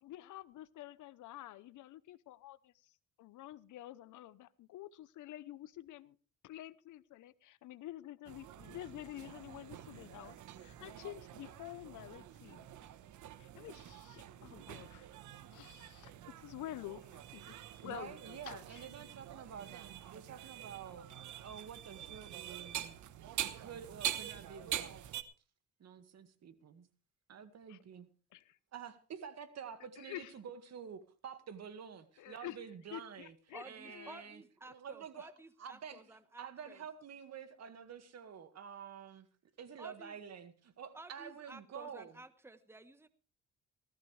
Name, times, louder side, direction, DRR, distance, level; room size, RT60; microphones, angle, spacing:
voice 1, 0.0-6.2 6.4-12.7 13.4-15.1 15.5-17.5 17.8-18.9 27.7-27.8 28.3-28.6 30.0-30.3 32.2-32.6 32.9-34.3, left 14 dB, 80° left, 0.9 m, -49 dB
sound 1, 8.2-25.2, right 11 dB, 75° right, 1.2 m, -45 dB
voice 2, 17.8-21.1 21.4-23.1 23.6-25.0 25.8-26.9 27.3-28.1 28.7-33.3 33.6-35.3 35.6-39.3 39.6-42.2, right 7 dB, 60° right, 1.9 m, -49 dB
voice 3, 33.5-36.8 39.8-40.2 40.9-43.1, right 2 dB, 10° right, 1.2 m, -53 dB
18.5 x 14.5 x 3.3 m
cardioid pair, 90°, 30 cm